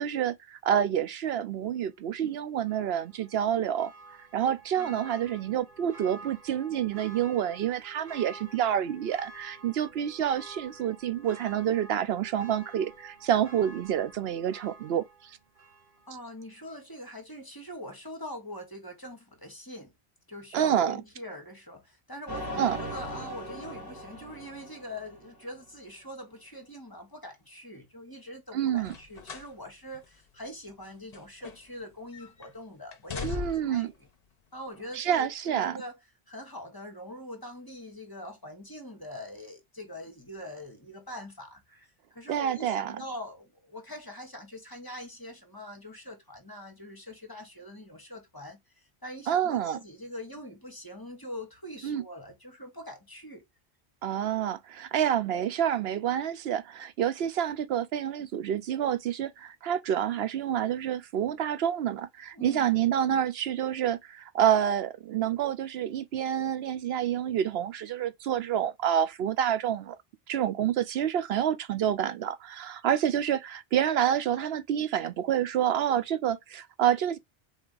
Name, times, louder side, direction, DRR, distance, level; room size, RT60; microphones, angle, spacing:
voice 1, 0.0-3.9 4.3-15.4 20.5-21.0 22.6-22.8 28.5-28.9 33.2-33.9 34.9-35.8 42.3-43.0 49.3-49.8 51.8-52.0 54.0-70.0 70.3-77.2, right 10 dB, 75° right, 0.8 m, -28 dB
Church bell, 2.6-16.3 16.7-16.8, right 3 dB, 55° right, 1.2 m, -50 dB
voice 2, 16.1-19.9 20.3-33.9 34.5-36.0 36.3-53.4 62.3-62.7, left 1 dB, 20° left, 1.1 m, -43 dB
sound 1, 22.3-25.7, equal, 20° right, 2.3 m, -39 dB
sound 2, 28.8-29.6 29.9-30.1 30.8-31.9 32.1-32.5 32.9-33.8 34.7-34.8, left 6 dB, 45° left, 0.8 m, -39 dB
4.0 x 3.4 x 3.8 m
omnidirectional pair, 1.0 m